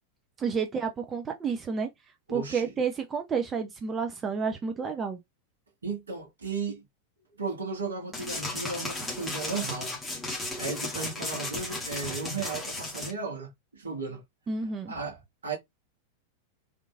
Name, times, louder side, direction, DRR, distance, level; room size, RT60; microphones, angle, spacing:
voice 1, 0.4-1.9 2.3-5.2 14.5-14.9, right 5 dB, 20° right, 0.6 m, -30 dB
voice 2, 2.3-2.7 5.8-6.8 7.4-10.0 10.6-14.2 14.9-15.6, right 4 dB, 70° right, 1.7 m, -35 dB
sound 1, 8.1-13.1, left 2 dB, 10° left, 1.2 m, -35 dB
3.6 x 3.0 x 2.4 m
figure-of-eight pair, 90°, 0 cm